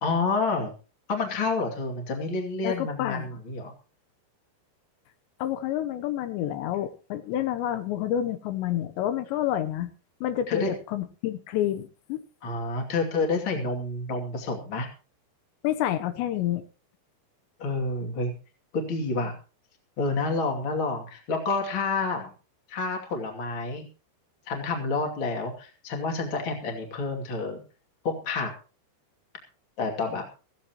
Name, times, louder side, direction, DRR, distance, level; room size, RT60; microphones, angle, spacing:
voice 1, 0.0-0.7 1.1-3.7 10.5-10.7 12.4-14.9 17.6-18.3 18.7-19.3 20.0-22.3 22.7-23.9 24.5-27.6 28.0-28.5 29.8-30.2, left 3 dB, 35° left, 2 dB, 2.7 m, -29 dB
voice 2, 2.6-3.3 5.4-9.9 10.2-12.2 15.6-16.6, left 12 dB, 85° left, 9 dB, 3.2 m, -29 dB
17.5 x 15.0 x 3.0 m, 0.35 s
omnidirectional pair, 5.0 m